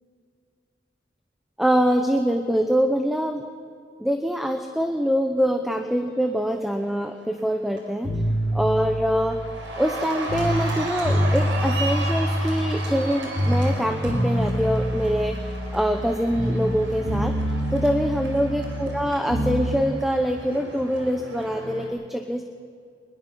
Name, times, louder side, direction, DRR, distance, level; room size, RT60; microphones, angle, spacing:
voice 1, 1.6-3.4 4.0-8.1 8.5-9.4 9.8-15.4 15.7-17.3 17.7-22.4, equal, ahead, 5 dB, 0.9 m, -24 dB
Cheering, 7.0-7.4 7.8-21.9, right 1 dB, 90° right, 5.0 m, -35 dB
sound 1, 8.0-10.7 11.0-13.1 13.3-16.8 17.0-19.7, equal, 60° right, 4.7 m, -26 dB
23.5 x 21.5 x 5.6 m, 2.2 s
head